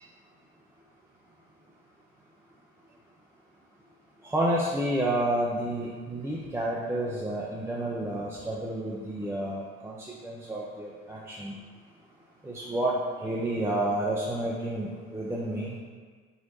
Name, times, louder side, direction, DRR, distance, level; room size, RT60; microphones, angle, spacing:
voice 1, 4.2-11.5 12.4-15.8, right 1 dB, 10° right, -5 dB, 0.5 m, -30 dB
3.0 x 2.9 x 4.1 m, 1.5 s
hypercardioid pair, 55°, 33 cm